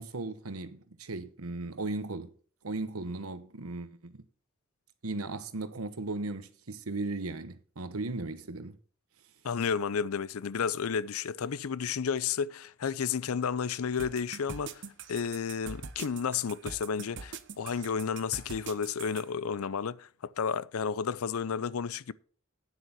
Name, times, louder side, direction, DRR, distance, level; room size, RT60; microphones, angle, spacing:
voice 1, 0.0-2.3 2.6-4.2 5.0-8.8, right 2 dB, 90° right, 1.1 m, -37 dB
voice 2, 9.4-22.1, left 6 dB, 85° left, 0.5 m, -32 dB
sound 1, 14.0-19.2, right 5 dB, 60° right, 0.9 m, -43 dB
9.4 x 7.9 x 5.8 m
head